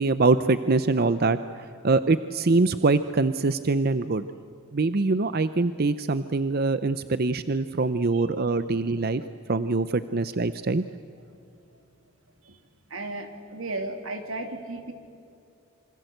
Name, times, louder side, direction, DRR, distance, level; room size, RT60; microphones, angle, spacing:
voice 1, 0.0-4.3 4.7-9.2 9.5-10.8, right 3 dB, 50° right, 12 dB, 0.6 m, -24 dB
voice 2, 12.9-14.9, right 2 dB, 85° right, 5 dB, 2.9 m, -35 dB
28.0 x 25.5 x 8.0 m, 2.6 s
head